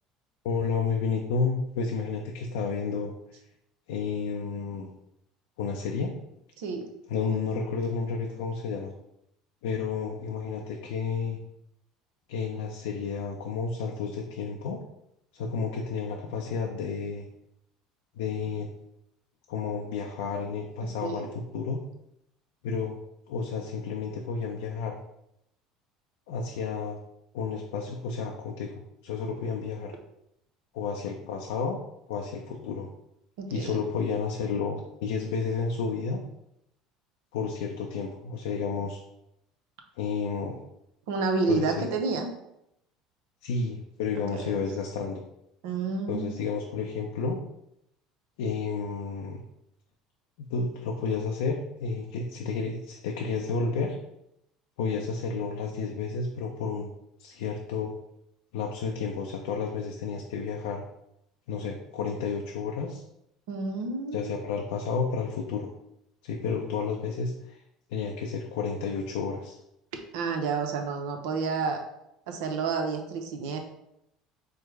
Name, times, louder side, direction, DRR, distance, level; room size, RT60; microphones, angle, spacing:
voice 1, 0.4-3.1 3.9-4.9 5.6-6.1 7.1-8.9 9.6-11.4 12.3-14.8 15.3-17.3 18.2-18.7 19.5-21.8 22.6-23.0 23.3-25.0 26.3-27.0 27.3-30.0 30.7-31.8 32.1-32.9 33.5-36.2 37.3-39.0 40.0-40.6 41.5-41.9 43.4-45.2 46.1-47.4 48.4-49.4 50.4-54.0 54.8-56.9 57.2-57.9 58.5-60.8 61.5-63.0 64.1-65.7 66.2-67.6 67.9-69.6, left 5 dB, 85° left, 1 dB, 0.5 m, -31 dB
voice 2, 6.6-6.9 21.0-21.4 33.4-33.8 41.1-42.3 44.3-44.5 45.6-46.4 63.5-64.3 70.1-71.8 72.3-73.6, right 4 dB, 80° right, 4 dB, 0.7 m, -30 dB
4.5 x 2.1 x 4.6 m, 0.82 s
supercardioid pair, 85°, 0 cm